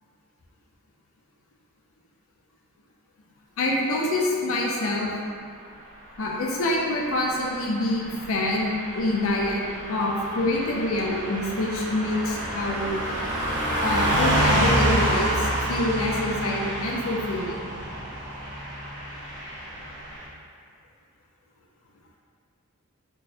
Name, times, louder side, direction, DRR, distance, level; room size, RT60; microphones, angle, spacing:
voice 1, 3.6-5.1 6.2-13.0 13.8-17.7, left 1 dB, 65° left, -2 dB, 0.5 m, -26 dB
Car passing by / Truck, 7.2-20.2, equal, 55° right, 0.8 m, -28 dB
4.4 x 2.1 x 2.6 m, 2.2 s
head